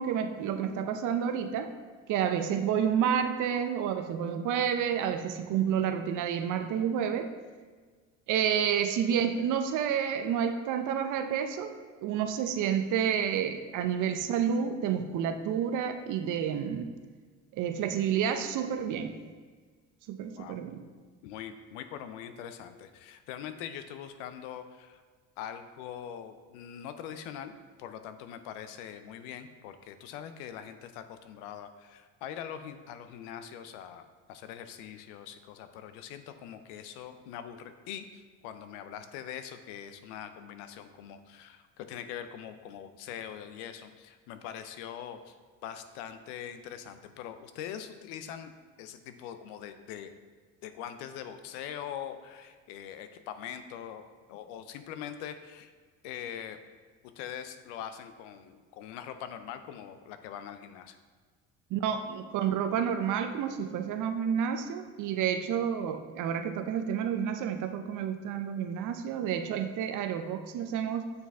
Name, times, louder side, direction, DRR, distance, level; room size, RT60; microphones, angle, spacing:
voice 1, 0.0-1.7 2.1-7.3 8.3-11.7 12.0-16.9 17.5-19.2 20.1-20.8 61.7-71.1, right 8 dB, 60° right, 8 dB, 0.7 m, -30 dB
voice 2, 21.2-25.0 25.4-27.5 27.8-34.0 34.3-45.4 45.6-48.5 48.8-50.1 50.6-54.0 54.3-55.7 56.0-56.6 57.2-61.0, left 9 dB, 85° left, 10 dB, 0.6 m, -42 dB
6.7 x 4.6 x 3.5 m, 1.5 s
supercardioid pair, 95°, 35 cm